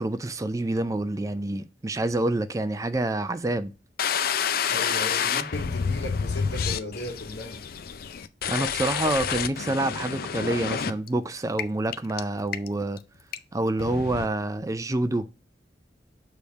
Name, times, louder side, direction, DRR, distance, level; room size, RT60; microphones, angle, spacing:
voice 1, 0.0-3.7 8.5-13.0 13.5-15.3, right 2 dB, 20° right, 0.4 m, -27 dB
sound 1, 4.0-11.1 11.6-11.7 11.9-12.2 12.5-13.0 13.3-13.4 13.8-14.3, left 7 dB, 55° left, 0.5 m, -28 dB
voice 2, 4.7-7.6, left 1 dB, 85° left, 2.0 m, -36 dB
6.6 x 3.5 x 5.1 m
head